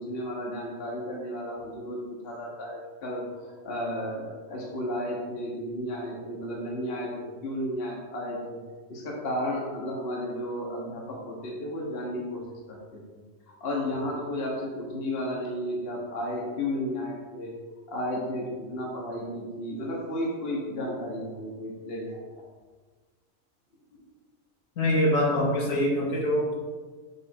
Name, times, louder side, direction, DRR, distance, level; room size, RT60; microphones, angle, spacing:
voice 1, 0.0-8.6 8.9-13.0 13.5-17.5 17.9-22.4, left 1 dB, 50° left, -2 dB, 1.2 m, -33 dB
voice 2, 24.8-26.5, left 1 dB, 75° left, -3 dB, 1.6 m, -24 dB
6.5 x 3.4 x 4.3 m, 1.4 s
omnidirectional pair, 1.4 m